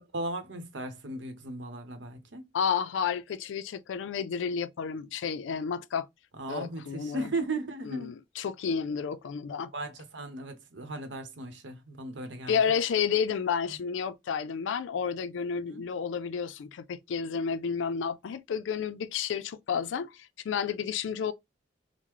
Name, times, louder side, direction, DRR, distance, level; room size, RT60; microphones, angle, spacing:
voice 1, 0.1-2.4 6.4-8.1 9.7-12.6 15.7-15.8, right 2 dB, 80° right, 0.8 m, -36 dB
voice 2, 2.5-6.1 6.5-7.3 7.8-9.7 12.5-21.3, left 6 dB, 85° left, 0.4 m, -31 dB
3.7 x 2.0 x 3.0 m
head